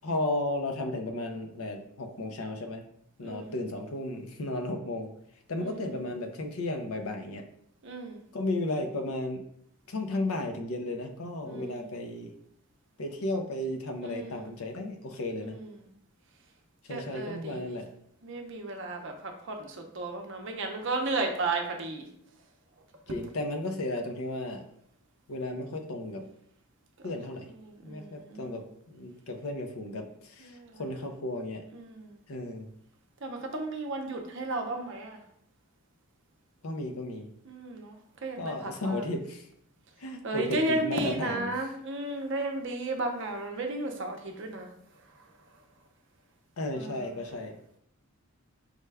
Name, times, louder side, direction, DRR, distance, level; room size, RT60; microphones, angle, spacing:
voice 1, 0.0-2.8 3.2-5.1 5.5-7.4 8.3-9.4 9.9-12.3 13.0-15.6 16.9-17.9 23.1-24.6 25.3-26.3 27.0-27.5 27.8-31.6 32.3-32.7 36.6-37.3 38.4-39.4 40.0-41.5 46.6-47.6, left 2 dB, 75° left, 5 dB, 0.6 m, -34 dB
voice 2, 3.2-3.6 5.6-6.0 7.8-8.2 11.4-11.9 14.0-14.5 15.4-15.9 16.9-17.8 18.2-22.1 27.0-27.1 27.6-28.6 30.4-30.9 31.7-32.2 33.2-35.2 37.4-38.0 38.2-39.0 40.2-44.7 46.7-47.2, right 2 dB, 55° right, 4 dB, 0.6 m, -34 dB
4.8 x 2.2 x 3.3 m, 0.69 s
head